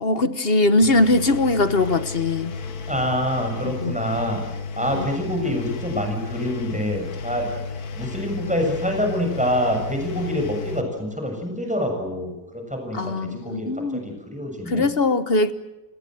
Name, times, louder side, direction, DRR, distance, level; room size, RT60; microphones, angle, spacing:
voice 1, 0.0-2.6 3.6-3.9 4.9-5.1 12.9-14.0 14.7-15.5, left 2 dB, 40° left, 1.2 m, -21 dB
Engine, 0.8-10.8, left 4 dB, 75° left, 1.8 m, -33 dB
voice 2, 2.9-4.4 4.8-7.5 8.0-14.8, equal, 5° right, 6.9 m, -26 dB
30.0 x 20.0 x 7.8 m
omnidirectional pair, 1.6 m